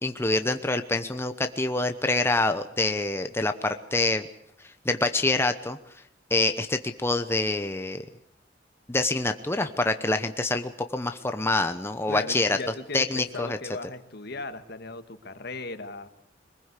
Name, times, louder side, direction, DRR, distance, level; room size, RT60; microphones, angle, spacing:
voice 1, 0.0-4.3 4.6-5.8 6.3-8.0 8.9-12.6 12.9-13.6, left 2 dB, 15° left, 8 dB, 0.9 m, -26 dB
voice 2, 12.1-16.1, left 3 dB, 60° left, 10 dB, 1.6 m, -37 dB
23.0 x 20.5 x 8.3 m, 0.71 s
head